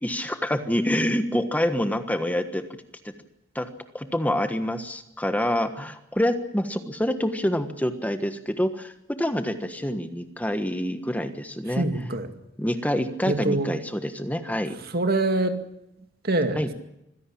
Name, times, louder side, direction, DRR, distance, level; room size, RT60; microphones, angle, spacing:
voice 1, 0.0-2.6 3.5-3.7 3.9-11.9 12.6-14.7 16.6-16.7, left 1 dB, 10° left, 8 dB, 1.3 m, -26 dB
voice 2, 11.8-12.3 13.2-13.7 14.9-15.6 16.2-16.7, right 2 dB, 50° right, 7 dB, 2.3 m, -24 dB
25.5 x 16.5 x 8.5 m, 0.84 s
head